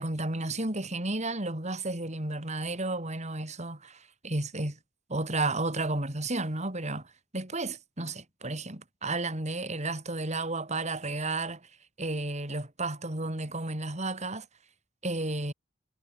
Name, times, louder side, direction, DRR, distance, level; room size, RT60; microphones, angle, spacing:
voice 1, 0.0-4.8 5.1-11.6 12.0-14.5 15.0-15.5, right 2 dB, 35° right, 4.8 m, -32 dB
head